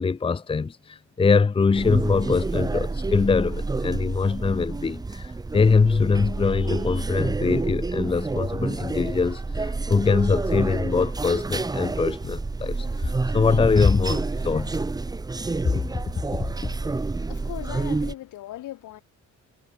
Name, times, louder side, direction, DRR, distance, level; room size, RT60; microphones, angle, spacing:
voice 1, 0.0-14.8, left 4 dB, 20° left, 1.0 m, -23 dB
sound 1, 1.7-18.1, right 3 dB, 15° right, 1.3 m, -29 dB
voice 2, 16.9-19.0, left 14 dB, 85° left, 5.0 m, -39 dB
cardioid pair, 160°, 30 cm